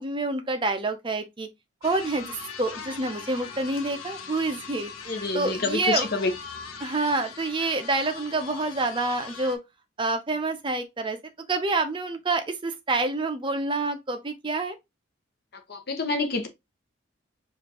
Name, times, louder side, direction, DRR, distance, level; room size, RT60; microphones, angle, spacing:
voice 1, 0.0-1.5 1.8-6.1 6.8-9.6 10.0-11.2 11.5-14.8, right 2 dB, 25° right, 0.5 m, -27 dB
sound 1, 1.8-9.6, left 6 dB, 90° left, 0.8 m, -40 dB
voice 2, 5.1-6.3 15.7-16.5, left 3 dB, 50° left, 0.9 m, -27 dB
4.9 x 2.5 x 2.9 m
head